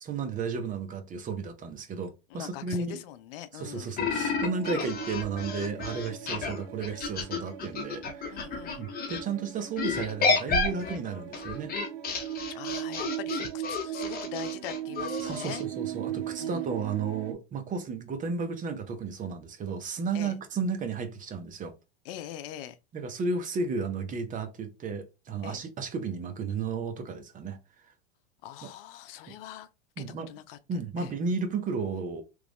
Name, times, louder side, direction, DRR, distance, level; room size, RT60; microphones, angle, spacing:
voice 1, 0.0-3.0 3.5-8.4 8.8-11.7 12.4-12.5 15.2-21.7 22.9-27.6 28.6-28.7 29.3-29.4 30.0-30.3 30.7-32.2, right 5 dB, 25° right, 0.7 m, -33 dB
voice 2, 2.3-4.0 6.3-6.5 8.3-8.9 12.5-15.6 16.4-16.6 20.1-20.3 22.0-22.8 25.4-25.6 28.4-29.7 30.0-30.6 31.0-31.1, left 12 dB, 60° left, 0.5 m, -42 dB
sound 1, 4.0-9.2 9.8-15.6, left 4 dB, 30° left, 1.0 m, -31 dB
sound 2, 4.2-17.3, right 12 dB, 70° right, 0.8 m, -39 dB
3.1 x 2.4 x 3.4 m
hypercardioid pair, 110°, 32 cm